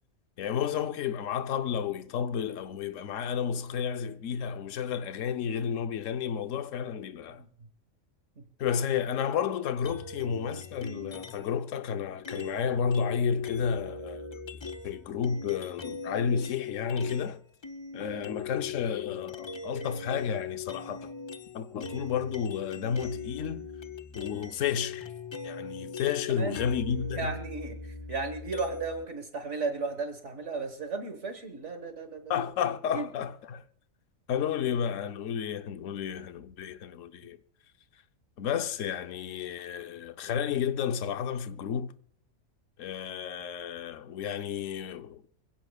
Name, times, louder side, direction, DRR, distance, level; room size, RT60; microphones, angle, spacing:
voice 1, 0.4-7.4 8.6-14.4 14.8-17.4 17.9-21.1 21.5-23.7 24.1-25.1 25.4-27.4 32.3-33.6 34.3-37.4 38.4-41.9 42.8-45.2, left 7 dB, 70° left, 1.1 m, -31 dB
sound 1, 9.8-11.6 12.2-17.3 17.6-29.1, left 4 dB, 35° left, 0.4 m, -40 dB
voice 2, 26.3-26.7 27.2-32.5 32.9-33.1, right 4 dB, 60° right, 1.8 m, -35 dB
26.0 x 16.5 x 2.3 m
omnidirectional pair, 1.4 m